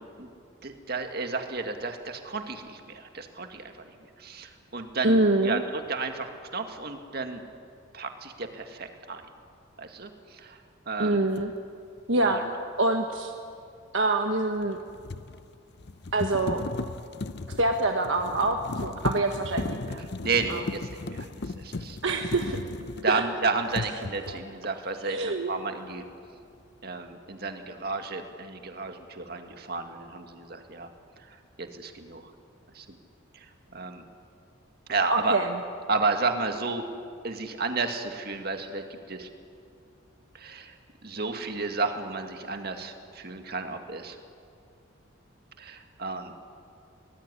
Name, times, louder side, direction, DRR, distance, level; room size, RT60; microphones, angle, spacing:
voice 1, 0.6-7.4 7.9-9.2 9.8-10.6 10.9-11.2 12.2-12.4 20.2-22.0 23.0-26.0 26.8-30.9 31.6-32.2 32.7-33.0 33.7-34.0 34.9-35.4 35.9-36.9 37.2-39.3 40.3-40.7 41.0-44.2 45.6-46.3, right 4 dB, 50° right, 5 dB, 2.0 m, -32 dB
voice 2, 5.0-5.6 11.0-11.5 12.1-12.5 12.8-13.3 13.9-14.8 16.1-16.6 17.6-20.0 20.5-20.6 22.0-22.6 23.1-23.2 24.3-24.4 25.0-25.5 35.1-35.6, right 2 dB, 65° right, 4 dB, 1.3 m, -25 dB
sound 1, 11.3-11.5 14.6-23.3 23.7-24.5, left 2 dB, 50° left, 0.7 m, -36 dB
24.0 x 19.5 x 9.8 m, 2.3 s
head